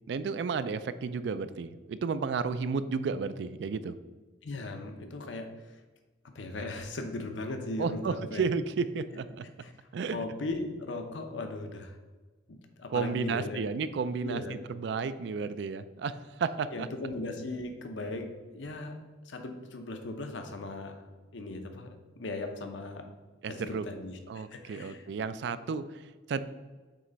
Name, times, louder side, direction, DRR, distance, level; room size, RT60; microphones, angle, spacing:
voice 1, 0.1-3.9 7.8-9.5 9.9-10.2 12.9-14.4 14.7-16.9 23.4-23.9 24.3-26.4, right 5 dB, 65° right, 14 dB, 0.3 m, -32 dB
voice 2, 4.4-5.8 6.3-8.4 9.6-12.0 12.5-13.6 14.2-14.6 16.7-21.1 21.3-23.1 23.5-25.1, left 2 dB, 80° left, 6 dB, 0.7 m, -38 dB
7.5 x 3.2 x 3.9 m, 1.3 s
head